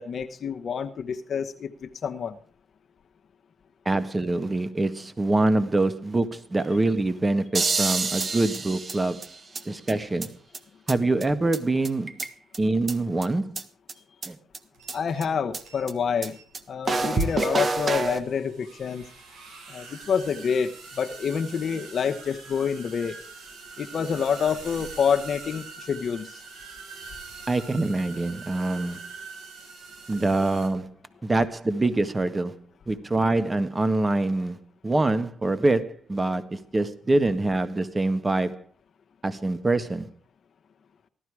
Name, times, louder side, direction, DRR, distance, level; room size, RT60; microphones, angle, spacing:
voice 1, 0.0-2.4 14.9-16.4 16.7-19.0 19.7-23.2 23.8-26.4, left 6 dB, 50° left, 1.0 m, -27 dB
voice 2, 3.8-9.3 9.7-10.3 10.9-12.2 12.6-13.6 14.3-14.4 27.5-29.0 30.1-30.9 31.2-32.6 32.9-34.6 34.8-38.6 39.2-40.1, right 2 dB, 20° right, 1.5 m, -25 dB
sound 1, 7.5-9.6 9.9-10.0 10.2-10.3 10.5-10.6 10.9-11.0 11.2-11.3 11.5-11.6 11.8-12.6 12.9-13.0 13.2-13.3 13.6-13.7 13.9-14.0 14.2-14.3 14.5-14.6 14.9-15.0 15.2-15.3 15.5-15.6 15.9-16.0 16.2-16.3 16.5-16.6 16.9-18.2, right 3 dB, 40° right, 1.5 m, -27 dB
sound 2, 14.7-15.3 15.6-16.0 16.3-16.5 16.9-17.4 17.7-30.7, right 4 dB, 85° right, 4.8 m, -44 dB
16.0 x 12.5 x 4.8 m
cardioid pair, 90°, 0 cm